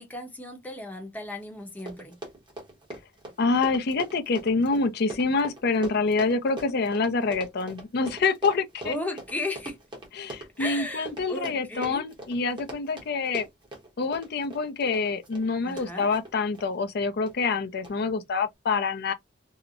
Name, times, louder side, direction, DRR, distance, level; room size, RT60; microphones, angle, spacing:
voice 1, 0.0-2.2 8.8-9.8 10.6-12.1 15.6-16.1, left 1 dB, 10° left, 0.8 m, -35 dB
Run, 1.4-1.5 1.7-16.7 17.3-17.5 17.8-17.9, right 2 dB, 25° right, 1.0 m, -42 dB
voice 2, 3.4-8.9 10.2-13.5 14.0-19.1, left 4 dB, 60° left, 0.5 m, -26 dB
2.8 x 2.1 x 2.4 m
head